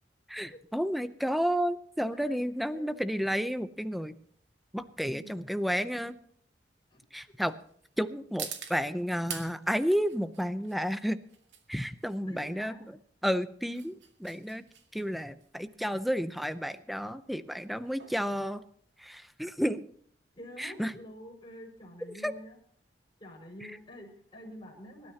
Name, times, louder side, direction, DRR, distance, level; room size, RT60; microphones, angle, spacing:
voice 1, 0.3-4.2 4.7-6.2 7.1-7.6 8.0-11.2 11.7-14.6 14.9-18.6 19.0-19.9 20.6-20.9 22.2-22.3 23.6-23.7, equal, ahead, 12 dB, 0.6 m, -31 dB
voice 2, 2.7-3.1 5.0-5.4 6.9-7.0 12.3-12.9 20.4-22.6 23.2-25.1, equal, 25° left, -2 dB, 5.7 m, -48 dB
sound 1, 2.8-19.4, right 8 dB, 90° right, 2.1 m, -48 dB
24.0 x 13.0 x 2.9 m, 0.62 s
head